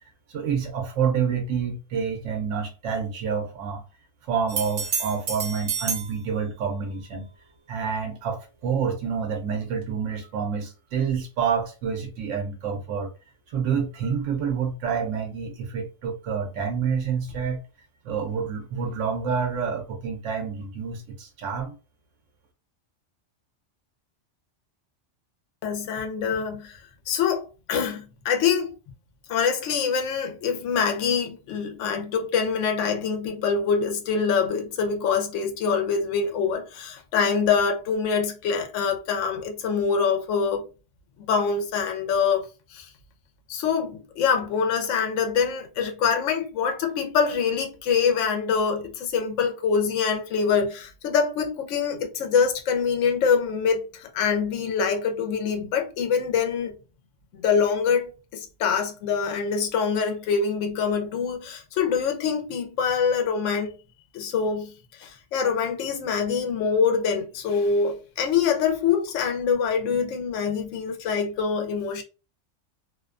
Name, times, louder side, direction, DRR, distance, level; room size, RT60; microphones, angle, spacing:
voice 1, 0.3-3.8 4.2-7.3 7.7-13.1 13.5-17.6 18.0-21.7, right 6 dB, 85° right, 0.9 m, -28 dB
sound 1, 4.5-6.1 9.8-9.9, right 6 dB, 60° right, 0.7 m, -29 dB
voice 2, 25.6-28.7 29.3-40.6 41.3-42.9 43.5-56.7 57.3-63.7 64.1-64.7 65.0-72.0, left 6 dB, 80° left, 0.9 m, -25 dB
2.5 x 2.1 x 2.3 m
omnidirectional pair, 1.2 m